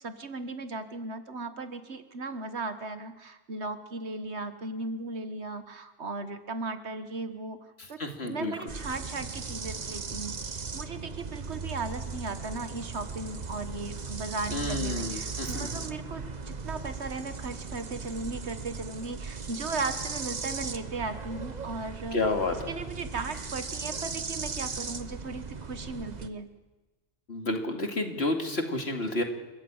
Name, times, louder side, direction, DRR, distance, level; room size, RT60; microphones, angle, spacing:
voice 1, 0.0-22.2 22.7-26.5, right 3 dB, 65° right, 10 dB, 1.7 m, -37 dB
voice 2, 8.0-8.5 14.5-15.9 22.1-22.7 27.3-29.2, left 2 dB, 60° left, 4 dB, 2.8 m, -30 dB
sound 1, 8.7-26.3, right 4 dB, 40° right, 1.2 m, -37 dB
29.5 x 14.0 x 8.9 m, 1.2 s
omnidirectional pair, 1.2 m